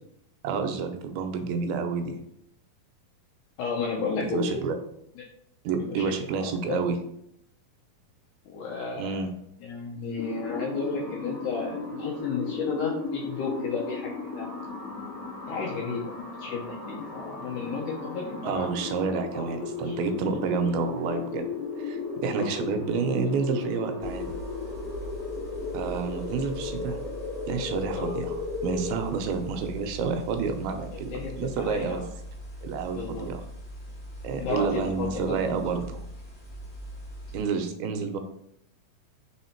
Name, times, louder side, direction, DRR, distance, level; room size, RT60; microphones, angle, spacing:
voice 1, 0.4-2.2 4.2-4.8 5.6-7.0 9.0-9.3 18.4-21.5 21.8-24.3 25.7-27.0 27.5-32.0 32.6-33.4 34.2-36.0 37.3-38.2, right 5 dB, 80° right, 6 dB, 2.5 m, -29 dB
voice 2, 3.6-4.7 5.2-5.3 5.8-6.9 8.5-9.2 9.6-14.5 15.5-16.1 16.4-18.7 19.3-19.5 19.8-20.0 22.3-22.5 27.9-28.2 31.1-32.1 32.9-33.3 34.4-35.8, left 4 dB, 75° left, -2 dB, 1.9 m, -33 dB
sound 1, 10.2-29.0, left 4 dB, 25° left, 2.4 m, -35 dB
sound 2, 24.0-37.4, equal, 40° left, 3.0 m, -41 dB
5.7 x 3.9 x 4.3 m, 0.74 s
omnidirectional pair, 4.4 m